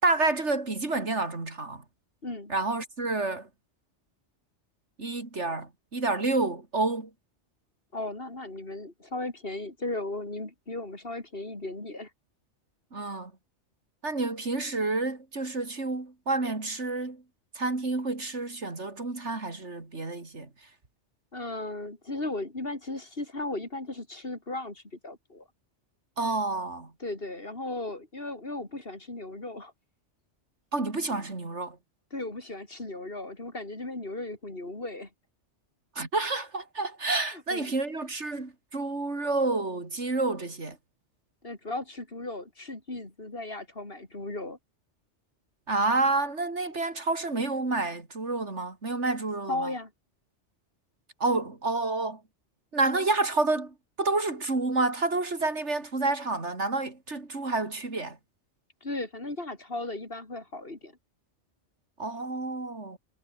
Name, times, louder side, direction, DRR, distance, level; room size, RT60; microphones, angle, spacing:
voice 1, 0.0-1.8 2.5-3.5 5.0-7.1 12.9-13.3 14.0-17.2 17.5-20.5 26.2-26.9 30.7-31.8 36.0-40.8 45.7-49.7 51.2-52.2 52.7-58.2 62.0-63.0, right 3 dB, 80° right, 3.8 m, -29 dB
voice 2, 2.2-2.5 7.9-12.1 21.3-25.4 27.0-29.7 32.1-35.1 37.5-37.7 41.4-44.6 49.5-49.9 58.8-61.0, left 2 dB, 55° left, 4.1 m, -36 dB
omnidirectional pair, 1.2 m